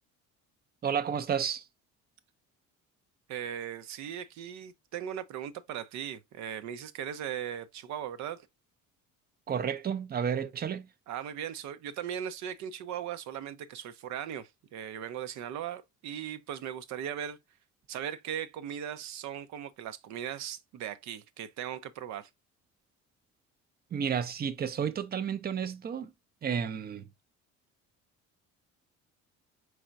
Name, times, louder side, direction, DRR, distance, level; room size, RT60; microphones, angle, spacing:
voice 1, 0.8-1.7 9.5-10.9 23.9-26.1 26.4-27.1, right 7 dB, 35° right, 0.6 m, -31 dB
voice 2, 3.3-8.5 11.1-17.4 17.9-22.3, right 9 dB, 70° right, 0.7 m, -38 dB
4.6 x 4.2 x 2.5 m
cardioid pair, 130°, 29 cm